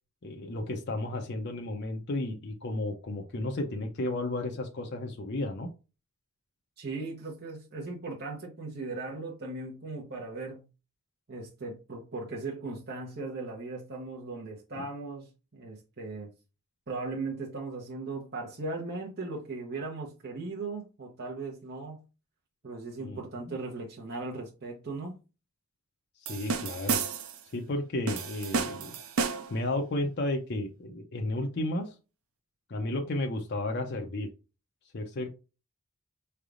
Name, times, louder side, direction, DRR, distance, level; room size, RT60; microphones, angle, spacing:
voice 1, 0.2-5.7 14.8-14.9 23.0-23.2 23.5-23.6 26.3-27.0 27.5-29.0 29.5-31.9 32.7-34.3 34.9-35.3, left 1 dB, 50° left, 0.6 m, -33 dB
voice 2, 6.8-10.7 11.3-16.3 16.9-22.0 22.6-25.1, right 3 dB, 45° right, 0.9 m, -38 dB
sound 1, 26.3-27.4 28.1-29.6, right 5 dB, 70° right, 0.6 m, -31 dB
4.6 x 3.4 x 2.4 m
head